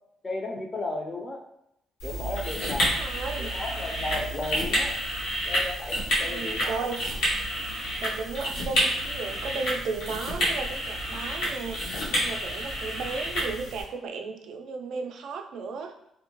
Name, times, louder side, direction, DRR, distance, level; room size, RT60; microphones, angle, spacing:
voice 1, 0.2-1.5 2.0-3.0 3.4-5.0 5.4-6.9, left 2 dB, 30° left, 2 dB, 0.5 m, -34 dB
sound 1, 2.0-13.8, equal, 85° left, 0.9 m, -29 dB
voice 2, 3.0-3.5 6.2-7.2 8.0-15.9, right 4 dB, 75° right, 5 dB, 0.3 m, -35 dB
2.6 x 2.1 x 2.9 m, 0.81 s
cardioid pair, 90°, 0 cm